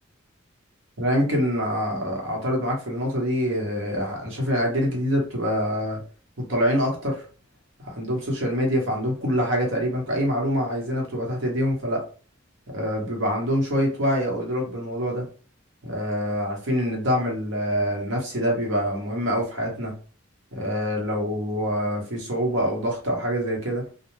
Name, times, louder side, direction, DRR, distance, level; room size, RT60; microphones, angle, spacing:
voice 1, 1.0-6.0 6.5-7.2 7.8-12.0 12.7-15.2 15.8-19.9 20.5-23.8, equal, 75° right, 0 dB, 1.0 m, -25 dB
2.2 x 2.1 x 3.1 m, 0.38 s
head